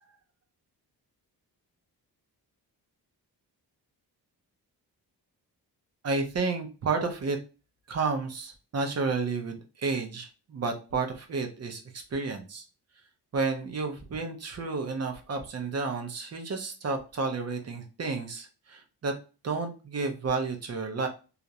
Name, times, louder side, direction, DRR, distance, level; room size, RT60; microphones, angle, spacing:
voice 1, 6.0-7.4 7.9-11.8 12.1-12.6 13.3-19.1 19.4-21.1, right 4 dB, 40° right, 5 dB, 0.5 m, -31 dB
2.4 x 2.0 x 2.7 m, 0.32 s
wide cardioid pair, 140°, 41 cm